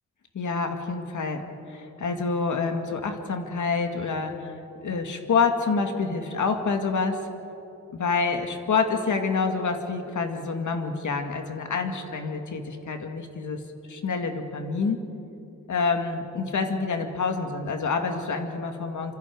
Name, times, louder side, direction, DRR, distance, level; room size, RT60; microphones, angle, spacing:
voice 1, 0.3-4.5 4.8-7.2 7.9-13.6 13.9-15.0 15.7-19.1, left 4 dB, 85° left, 5 dB, 2.0 m, -27 dB
28.0 x 26.0 x 4.8 m, 2.9 s
wide cardioid pair, 130°, 29 cm